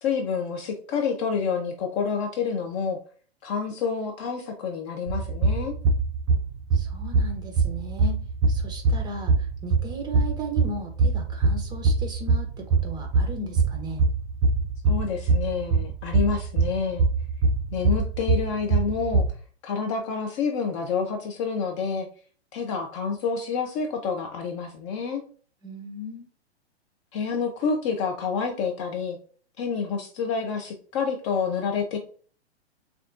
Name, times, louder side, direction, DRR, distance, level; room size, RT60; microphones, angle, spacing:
voice 1, 0.0-3.0 3.4-5.7 14.9-17.1 17.7-19.2 19.6-22.1 22.5-25.2 27.1-29.2 29.6-32.0, left 5 dB, 30° left, 3 dB, 0.5 m, -28 dB
sound 1, 5.1-19.3, right 3 dB, 30° right, 0.4 m, -23 dB
voice 2, 6.7-14.0 25.6-26.3, right 1 dB, 10° right, 3 dB, 0.8 m, -36 dB
6.3 x 2.3 x 2.4 m, 0.43 s
figure-of-eight pair, 115°, 33 cm